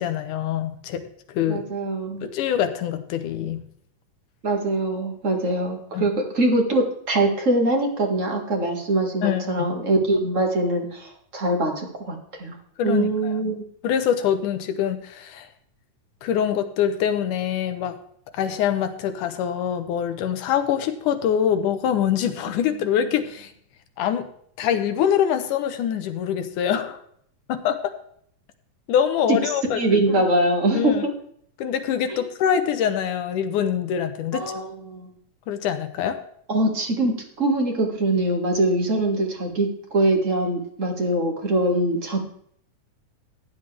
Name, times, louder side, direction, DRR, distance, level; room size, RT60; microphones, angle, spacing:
voice 1, 0.0-1.6 2.2-3.7 5.9-6.1 9.2-9.7 12.8-13.6 13.8-15.5 16.2-18.0 18.3-23.5 24.0-24.3 24.6-27.0 27.5-27.9 28.9-30.2 30.7-31.0 31.6-34.5 35.5-36.2, left 9 dB, 75° left, 9 dB, 2.3 m, -24 dB
voice 2, 1.5-2.3 4.4-12.5 12.8-13.6 29.3-30.9 32.1-32.2 34.3-35.1 36.5-42.2, right 1 dB, 30° right, 2 dB, 1.6 m, -23 dB
15.5 x 9.7 x 3.4 m, 0.65 s
omnidirectional pair, 3.8 m